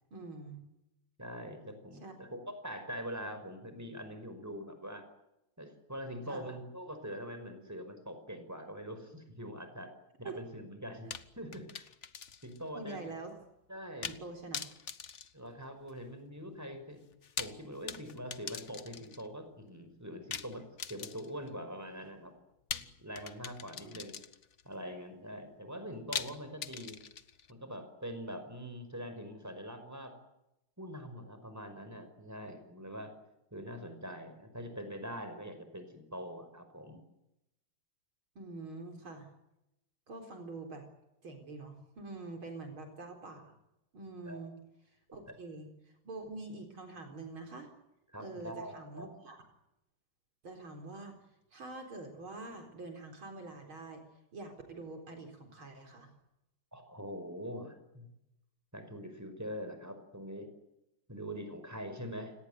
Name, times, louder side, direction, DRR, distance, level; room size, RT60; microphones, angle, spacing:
voice 1, 0.1-0.6 2.0-2.1 6.3-6.5 10.2-10.4 11.0-11.1 12.7-13.3 14.0-14.6 23.8-23.9 38.4-39.3 40.1-40.8 41.2-43.5 43.9-44.5 45.1-45.7 46.0-47.7 48.2-49.4 50.4-51.2 51.5-54.0 54.3-56.1, right 3 dB, 70° right, 4 dB, 5.0 m, -45 dB
voice 2, 1.2-5.1 5.6-9.9 10.2-11.1 11.4-11.8 12.4-13.0 13.7-14.1 15.3-17.0 17.4-22.3 22.8-24.2 24.6-27.0 27.5-30.1 30.8-33.1 33.5-37.0 44.3-44.4 48.1-49.1 56.7-58.1 58.7-60.5 61.1-62.3, equal, 5° right, 8 dB, 5.3 m, -43 dB
sound 1, 11.1-12.6 12.9-13.0 14.0-14.3 14.5-16.1 17.1-19.3 20.3-21.5 22.7-24.6 26.1-27.5, left 7 dB, 45° left, 1.1 m, -42 dB
30.0 x 18.5 x 9.3 m, 0.89 s
omnidirectional pair, 2.3 m